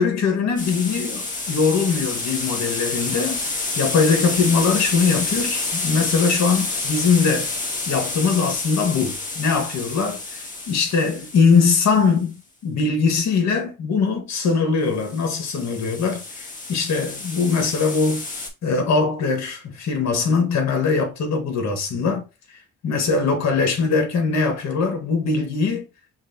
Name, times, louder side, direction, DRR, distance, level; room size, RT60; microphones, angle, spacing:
voice 1, 0.0-3.5 3.8-7.5 7.9-18.2 18.6-22.2 22.8-25.9, left 5 dB, 65° left, 1.7 m, -21 dB
sound 1, 0.6-12.0 14.9-18.5, left 3 dB, 25° left, 1.7 m, -29 dB
6.0 x 2.7 x 2.8 m
cardioid pair, 90°, 30 cm